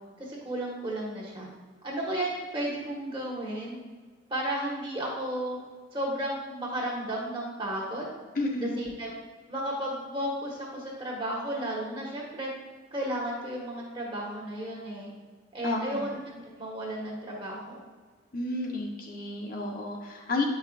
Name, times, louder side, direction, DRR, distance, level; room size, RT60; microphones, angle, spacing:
voice 1, 0.2-1.5 1.8-3.8 4.3-5.6 5.9-8.0 8.6-9.1 9.5-12.5 12.9-15.1 15.5-17.8, right 1 dB, 25° right, -3 dB, 1.4 m, -33 dB
voice 2, 8.4-8.7 15.6-16.1 18.3-20.4, left 2 dB, 45° left, -1 dB, 0.8 m, -31 dB
8.8 x 5.5 x 2.4 m, 1.5 s
head